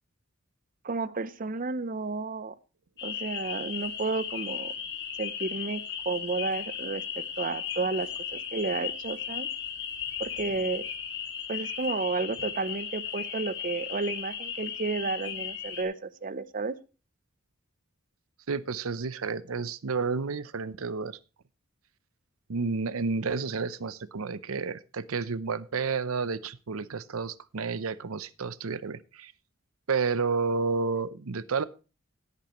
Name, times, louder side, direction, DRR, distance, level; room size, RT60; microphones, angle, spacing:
voice 1, 0.8-2.6 3.0-4.7 5.2-7.0 7.4-9.5 10.2-10.8 11.5-16.7, right 3 dB, 40° right, 15 dB, 0.7 m, -32 dB
sound 1, 3.0-15.8, left 8 dB, 55° left, 2.1 m, -36 dB
voice 2, 18.5-21.2 22.5-29.3 29.9-31.6, right 4 dB, 85° right, 17 dB, 0.7 m, -31 dB
17.5 x 8.4 x 3.0 m, 0.33 s
head